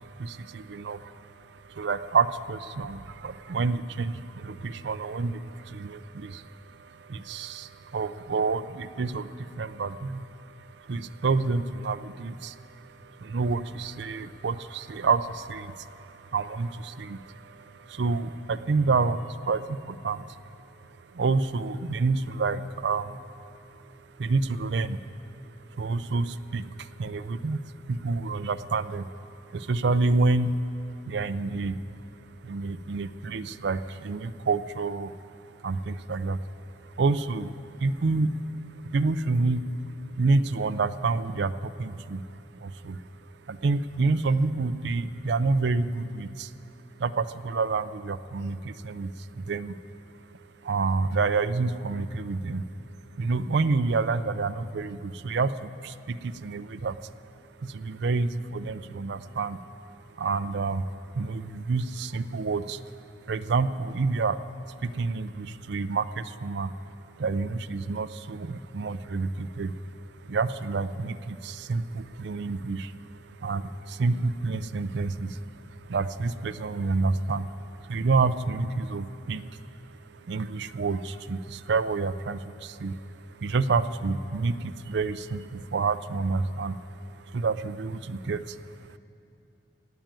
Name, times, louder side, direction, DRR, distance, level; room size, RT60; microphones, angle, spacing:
voice 1, 0.0-46.6 46.9-52.7 53.1-57.1 57.4-89.0, right 3 dB, 65° right, 13 dB, 0.5 m, -29 dB
16.0 x 9.1 x 9.0 m, 2.7 s
head